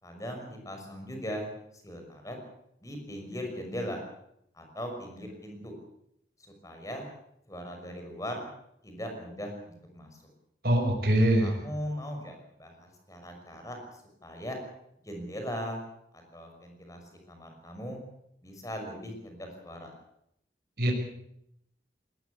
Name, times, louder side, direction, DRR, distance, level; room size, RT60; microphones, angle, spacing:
voice 1, 0.0-1.5 1.8-2.4 2.8-4.0 4.5-5.7 6.4-7.1 7.5-8.5 8.8-10.2 11.4-14.6 15.0-15.8 16.1-18.0 18.4-19.9, equal, 20° left, 3 dB, 6.0 m, -39 dB
voice 2, 10.6-11.6 20.8-20.9, right 1 dB, 55° right, 2 dB, 5.8 m, -23 dB
20.5 x 19.0 x 8.4 m, 0.76 s
head